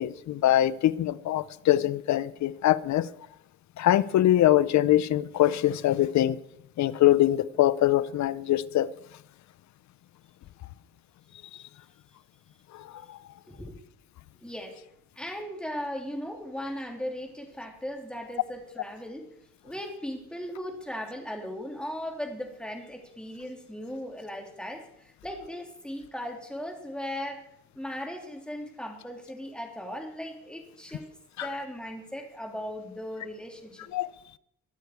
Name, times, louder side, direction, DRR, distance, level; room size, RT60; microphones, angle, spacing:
voice 1, 0.0-3.1 3.8-6.4 6.8-8.9 31.4-31.5 33.9-34.1, left 13 dB, 65° left, 17 dB, 0.7 m, -23 dB
voice 2, 14.4-14.8 15.2-19.3 19.6-27.5 27.7-31.1 31.4-33.9, equal, 5° left, 2 dB, 3.3 m, -37 dB
23.5 x 8.2 x 4.7 m, 0.76 s
cardioid pair, 90°, 30 cm